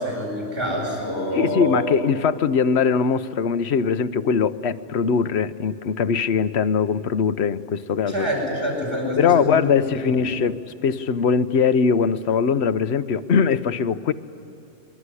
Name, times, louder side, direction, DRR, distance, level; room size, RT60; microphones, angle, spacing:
voice 1, 0.0-1.9 8.1-9.7 10.0-10.2, equal, 50° right, -2 dB, 8.4 m, -26 dB
voice 2, 1.3-8.3 9.2-14.1, left 6 dB, 60° left, 13 dB, 1.1 m, -21 dB
26.5 x 22.5 x 9.8 m, 2.9 s
omnidirectional pair, 1.3 m